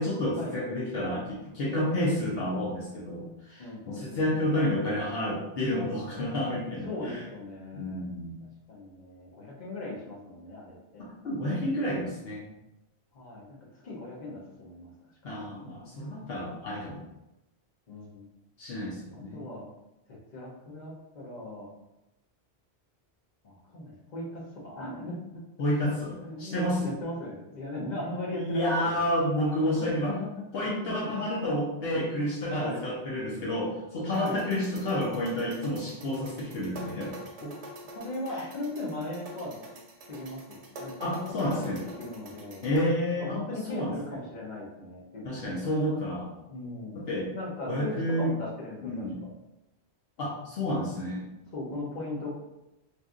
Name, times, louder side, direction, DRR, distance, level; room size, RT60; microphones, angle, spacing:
voice 1, 0.0-7.2 7.7-8.4 11.0-12.5 15.2-17.0 18.6-19.4 25.6-27.0 28.4-30.1 30.5-37.1 37.4-37.5 41.0-41.8 42.6-43.4 43.7-44.2 45.2-46.3 46.9-47.3 47.6-48.3 48.8-49.2 50.2-51.3, left 1 dB, 70° left, -5 dB, 0.8 m, -30 dB
voice 2, 3.6-4.7 6.8-8.1 8.7-11.1 13.1-14.9 17.9-18.3 19.3-19.7 20.1-21.7 23.4-25.4 25.8-29.1 29.3-31.3 32.5-32.9 34.1-34.4 37.9-39.6 40.1-42.7 43.2-45.7 46.5-47.1 47.3-49.3 51.5-52.3, left 1 dB, 45° left, -4 dB, 0.8 m, -38 dB
sound 1, 34.1-42.8, right 1 dB, 85° right, 0.9 m, -46 dB
2.9 x 2.5 x 2.4 m, 0.93 s
omnidirectional pair, 1.1 m